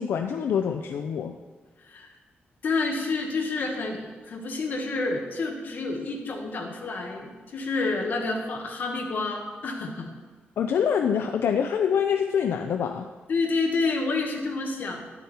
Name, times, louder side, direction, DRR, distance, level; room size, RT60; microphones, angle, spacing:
voice 1, 0.0-1.3 10.6-13.1, left 7 dB, 80° left, 6 dB, 0.4 m, -25 dB
voice 2, 2.6-10.1 13.3-15.0, left 3 dB, 55° left, 1 dB, 1.5 m, -29 dB
11.0 x 7.0 x 4.3 m, 1.4 s
wide cardioid pair, 145°, 4 cm